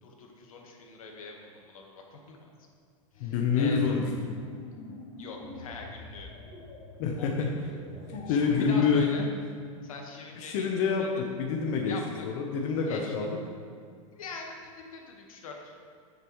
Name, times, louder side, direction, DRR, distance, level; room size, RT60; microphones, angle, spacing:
voice 1, 0.0-2.5 3.1-4.0 5.2-6.3 7.2-7.5 8.3-9.3 9.8-11.1 11.8-12.2 12.9-13.1 14.1-15.7, left 3 dB, 85° left, 1 dB, 1.5 m, -43 dB
sound 1, 3.1-8.7, left 2 dB, 40° left, 2.3 m, -47 dB
voice 2, 3.2-4.3 7.0-7.5 8.1-9.1 10.3-11.9 12.2-13.3, left 5 dB, 60° left, 1 dB, 1.0 m, -27 dB
13.0 x 6.8 x 3.2 m, 2.2 s
hypercardioid pair, 120°, 17 cm